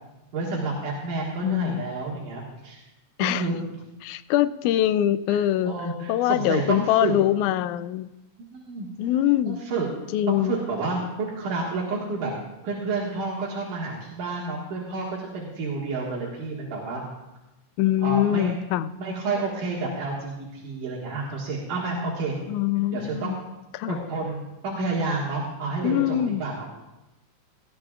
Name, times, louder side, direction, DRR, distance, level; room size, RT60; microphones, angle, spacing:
voice 1, 0.3-2.8 3.2-3.6 5.3-7.2 8.5-8.9 9.5-9.9 10.3-12.3 12.6-17.0 18.0-18.6 19.0-22.4 22.9-23.4 23.9-26.6, right 3 dB, 75° right, -4 dB, 3.3 m, -30 dB
voice 2, 1.4-1.8 3.2-3.5 4.0-5.7 6.1-8.1 9.0-9.6 10.1-10.6 17.8-18.9 22.5-23.4 23.7-24.0 25.8-26.4, left 12 dB, 80° left, 14 dB, 1.9 m, -23 dB
18.0 x 15.5 x 2.4 m, 0.99 s
omnidirectional pair, 3.7 m